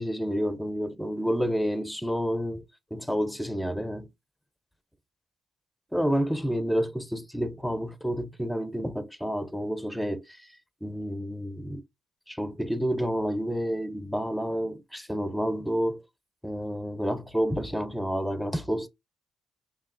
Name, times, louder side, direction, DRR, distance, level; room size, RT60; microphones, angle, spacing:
voice 1, 0.0-2.6 2.9-4.1 5.9-11.8 12.3-16.0 16.4-18.9, equal, ahead, 0.5 m, -29 dB
5.6 x 2.8 x 2.6 m
cardioid pair, 90°, 0 cm